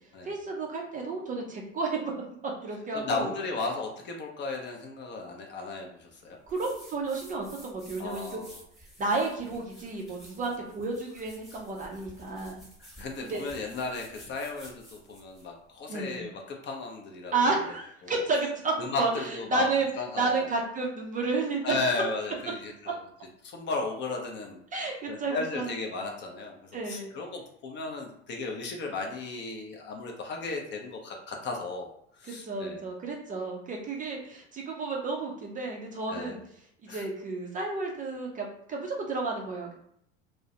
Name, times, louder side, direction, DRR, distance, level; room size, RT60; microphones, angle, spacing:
voice 1, 0.2-2.0 2.4-3.3 6.5-8.4 9.0-12.6 13.2-13.4 15.9-16.2 17.3-19.9 20.2-21.7 24.7-25.7 26.7-27.1 32.3-36.4 36.8-39.7, right 3 dB, 25° right, 0 dB, 0.4 m, -31 dB
voice 2, 2.9-6.4 8.0-8.5 12.8-17.5 18.0-18.1 18.8-19.7 20.0-20.5 21.6-23.0 23.4-24.6 25.1-32.8 36.1-36.4 36.9-37.0, left 3 dB, 30° left, 1 dB, 0.5 m, -35 dB
sound 1, 6.5-15.5, equal, ahead, 1.0 m, -52 dB
2.3 x 2.1 x 2.7 m, 0.71 s
hypercardioid pair, 80°, 36 cm